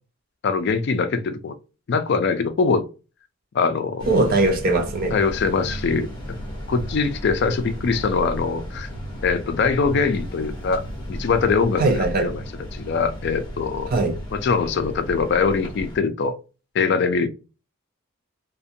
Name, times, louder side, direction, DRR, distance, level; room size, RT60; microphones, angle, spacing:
voice 1, 0.4-1.6 1.9-2.8 3.5-4.1 5.1-6.1 6.7-8.9 9.2-10.8 11.1-12.3 12.7-13.9 14.3-16.3 16.7-17.3, left 5 dB, 50° left, 0.3 m, -22 dB
sound 1, 4.0-16.0, equal, 20° left, 0.7 m, -34 dB
voice 2, 4.1-5.2 11.8-12.3 13.9-14.1, right 2 dB, 40° right, 0.4 m, -20 dB
2.5 x 2.2 x 2.6 m
head